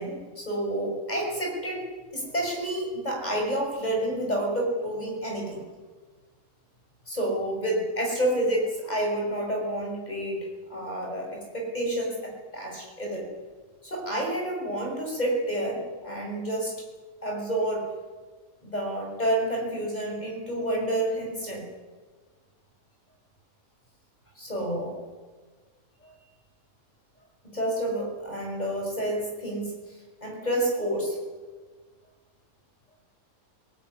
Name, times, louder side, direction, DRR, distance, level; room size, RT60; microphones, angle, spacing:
voice 1, 0.0-1.9 2.1-5.7 7.1-13.3 13.8-16.7 17.2-17.9 18.6-21.6 24.3-24.9 26.0-26.1 27.5-29.7 30.2-31.2, right 1 dB, 30° left, 0 dB, 6.7 m, -29 dB
19.0 x 18.5 x 9.8 m, 1.4 s
omnidirectional pair, 1.5 m